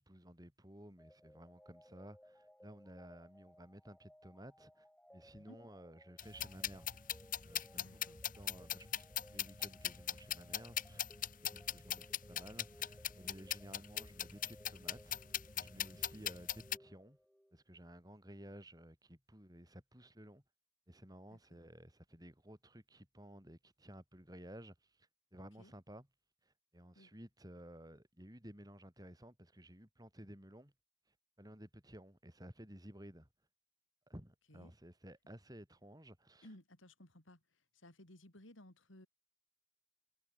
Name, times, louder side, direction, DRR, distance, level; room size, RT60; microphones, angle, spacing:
voice 1, 0.0-4.8 5.1-6.9 7.4-8.0 8.4-11.1 11.4-15.2 15.5-17.2 17.5-20.4 20.9-26.1 26.4-30.7 31.4-33.3 34.1-36.5, equal, 20° right, 4.4 m, -55 dB
sound 1, 1.0-17.6, equal, 5° left, 4.1 m, -63 dB
sound 2, 6.2-16.8, left 11 dB, 45° left, 2.9 m, -40 dB
voice 2, 7.7-8.2 16.1-16.3 21.3-21.6 25.6-25.7 26.9-27.1 34.5-34.7 36.4-39.1, left 1 dB, 80° left, 4.6 m, -59 dB
head